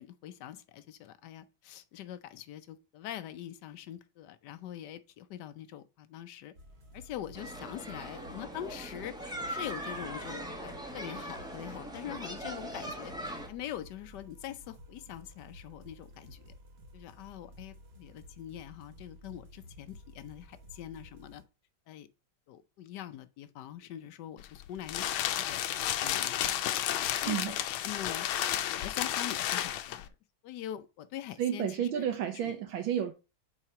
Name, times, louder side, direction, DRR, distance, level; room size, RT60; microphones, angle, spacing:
voice 1, 0.0-6.5 6.9-16.5 16.9-21.4 21.9-22.1 22.5-25.1 25.4-26.8 27.2-28.3 28.7-30.1 30.4-32.1 32.4-32.5, left 11 dB, 70° left, 1.1 m, -43 dB
sound 1, 6.5-21.4, equal, 35° right, 1.2 m, -53 dB
sound 2, 7.4-13.5, equal, 5° right, 0.6 m, -40 dB
sound 3, 24.4-30.1, left 12 dB, 85° left, 1.5 m, -32 dB
voice 2, 31.4-33.1, right 9 dB, 80° right, 1.5 m, -31 dB
4.8 x 4.4 x 5.4 m
omnidirectional pair, 2.2 m